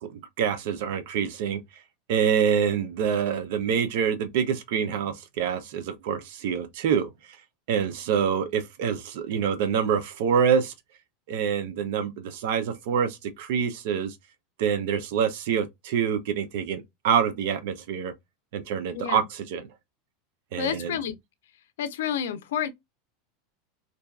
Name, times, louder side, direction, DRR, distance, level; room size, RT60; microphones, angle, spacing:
voice 1, 0.1-1.6 2.1-7.1 7.7-10.7 11.3-14.1 14.6-18.1 18.5-19.6 20.5-21.0, right 7 dB, 70° right, 0.5 m, -26 dB
voice 2, 20.6-21.2 21.8-22.7, left 9 dB, 90° left, 0.4 m, -29 dB
2.6 x 2.3 x 2.2 m
supercardioid pair, 140°, 0 cm